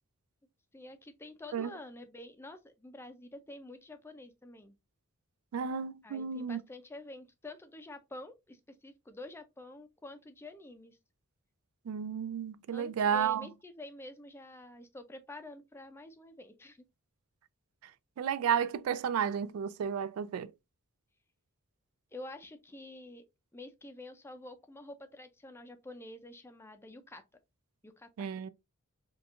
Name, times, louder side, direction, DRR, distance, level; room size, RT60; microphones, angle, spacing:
voice 1, 0.7-4.8 6.0-11.0 12.7-16.8 22.1-23.2 23.5-27.2 27.8-28.1, left 2 dB, 10° left, 0.4 m, -48 dB
voice 2, 5.5-6.6 11.9-13.5 18.2-20.5 28.2-28.5, right 7 dB, 75° right, 0.3 m, -32 dB
4.3 x 2.3 x 2.4 m
head